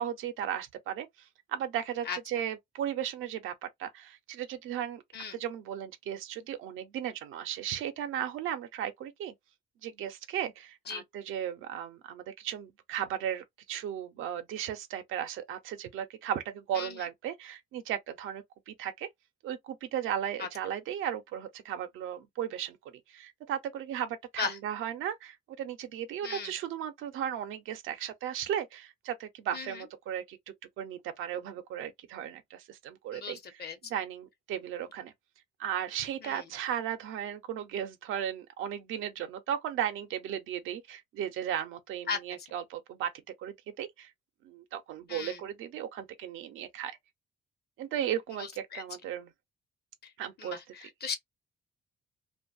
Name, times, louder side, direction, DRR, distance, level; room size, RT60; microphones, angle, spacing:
voice 1, 0.0-5.0 5.3-9.3 9.8-19.1 19.4-30.4 30.8-33.6 33.9-35.1 35.6-44.1 44.4-47.0 47.8-49.3 50.2-50.6, right 10 dB, 85° right, 0.7 m, -36 dB
voice 2, 26.2-26.5 29.5-29.9 33.1-33.8 36.2-36.4 42.1-42.5 45.1-45.4 48.4-48.8 50.0-50.1 50.4-51.2, left 5 dB, 55° left, 0.9 m, -37 dB
2.6 x 2.4 x 2.3 m
cardioid pair, 90°, 20 cm